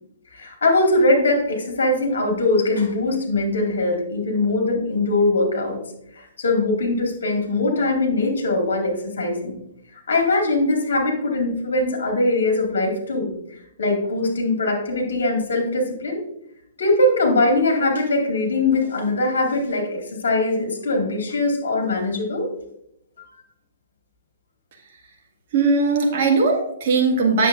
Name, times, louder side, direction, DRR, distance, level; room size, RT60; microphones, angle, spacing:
voice 1, 0.3-5.8 6.1-9.6 9.9-13.3 13.8-16.2 16.8-22.5, left 2 dB, 65° left, 1 dB, 2.0 m, -21 dB
voice 2, 25.5-27.5, right 4 dB, 50° right, 0 dB, 1.8 m, -19 dB
9.3 x 6.9 x 2.5 m, 0.78 s
figure-of-eight pair, 120°, 0 cm